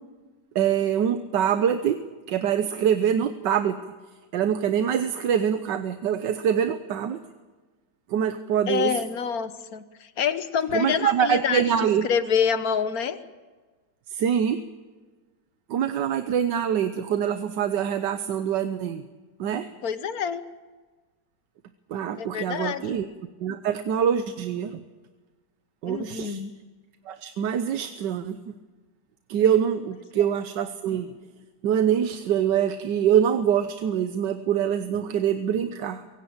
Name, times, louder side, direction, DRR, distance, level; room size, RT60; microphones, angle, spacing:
voice 1, 0.5-2.0 2.3-3.8 4.3-7.2 8.1-9.0 10.7-12.1 14.1-14.6 15.7-19.0 19.4-19.7 21.9-23.0 23.4-24.8 25.8-26.4 27.1-28.5 29.3-31.1 31.6-36.1, right 9 dB, 70° right, 10 dB, 1.5 m, -24 dB
voice 2, 8.7-13.2 19.8-20.4 22.2-23.0 25.8-26.5 30.1-30.2, left 7 dB, 55° left, 12 dB, 1.5 m, -27 dB
23.5 x 17.5 x 8.7 m, 1.3 s
omnidirectional pair, 2.0 m